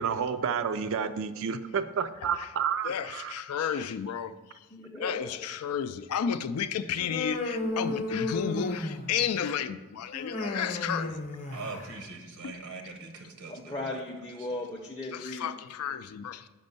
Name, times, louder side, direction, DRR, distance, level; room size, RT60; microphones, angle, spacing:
voice 1, 0.0-3.3, right 6 dB, 60° right, 10 dB, 0.4 m, -30 dB
voice 2, 2.8-4.3 5.0-11.1 12.4-12.5 15.1-16.5, left 8 dB, 80° left, 11 dB, 0.4 m, -32 dB
voice 3, 3.6-3.9 4.7-5.4 13.4-15.5, left 1 dB, 15° left, -2 dB, 0.5 m, -38 dB
Human voice, 7.0-9.2 10.1-12.0, left 2 dB, 35° left, 0.8 m, -33 dB
voice 4, 11.5-13.7, right 3 dB, 80° right, 4 dB, 0.8 m, -41 dB
5.3 x 5.2 x 5.4 m, 1.2 s
head